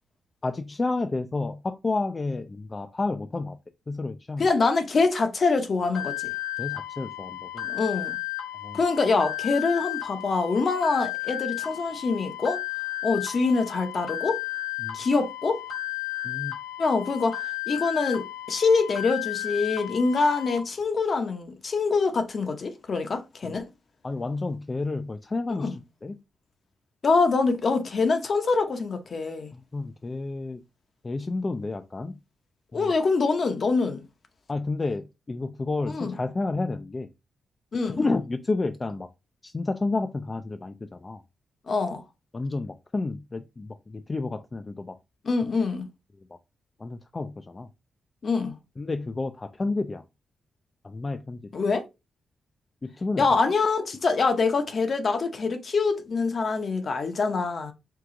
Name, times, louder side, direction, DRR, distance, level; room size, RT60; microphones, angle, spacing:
voice 1, 0.4-3.6 3.9-4.5 6.6-7.7 8.6-8.8 14.8-15.0 16.2-16.6 23.4-23.6 24.0-26.2 29.5-30.6 31.0-32.2 32.7-32.9 34.5-37.1 37.9-39.1 39.4-41.2 42.3-45.0 46.3-46.4 46.8-47.7 48.8-50.0 50.8-51.6 52.8-53.3, left 3 dB, 25° left, 0.3 m, -30 dB
voice 2, 4.4-6.3 7.7-8.2 8.7-12.6 13.0-14.4 14.9-15.6 16.8-23.7 25.6-25.7 27.0-29.5 32.7-34.0 35.9-36.1 37.7-38.0 41.7-42.0 45.2-45.9 48.2-48.6 51.5-51.8 53.2-57.7, left 4 dB, 45° left, 0.7 m, -25 dB
sound 1, 5.9-20.6, left 16 dB, 65° left, 1.6 m, -34 dB
4.6 x 2.3 x 3.7 m
cardioid pair, 115°, 0 cm